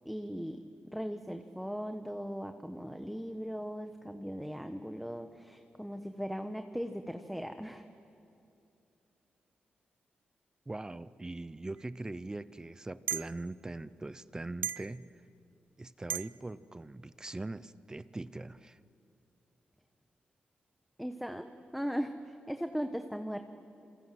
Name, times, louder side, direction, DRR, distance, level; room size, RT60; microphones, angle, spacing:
voice 1, 0.0-0.6 0.9-7.9 21.0-21.5 21.7-23.4, equal, ahead, 7 dB, 1.2 m, -38 dB
voice 2, 10.7-15.1 15.8-18.8, right 2 dB, 20° right, 16 dB, 0.7 m, -41 dB
sound 1, 11.8-11.9 13.1-13.3 14.6-14.9 16.1-16.3, right 9 dB, 80° right, 0.5 m, -35 dB
27.5 x 26.0 x 7.7 m, 2.7 s
cardioid pair, 80°, 3 cm